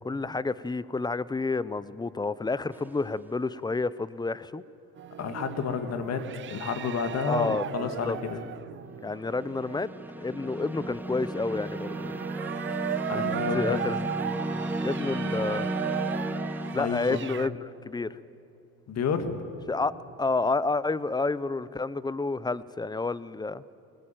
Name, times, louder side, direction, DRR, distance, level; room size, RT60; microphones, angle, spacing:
voice 1, 0.0-4.6 7.3-8.2 9.0-9.9 10.2-12.2 13.1-14.0 14.8-15.7 16.7-18.2 19.7-19.9 20.2-23.6, left 3 dB, 15° left, 18 dB, 0.6 m, -30 dB
sound 1, 2.7-3.1 9.0-16.8, right 1 dB, 5° right, 1.1 m, -34 dB
sound 2, 5.0-17.5, right 10 dB, 40° right, 0.6 m, -37 dB
voice 2, 5.2-8.4 13.1-13.8 16.8-17.2 18.9-19.4, left 6 dB, 55° left, 8 dB, 2.0 m, -30 dB
20.0 x 19.5 x 9.1 m, 2.6 s
supercardioid pair, 95°, 32 cm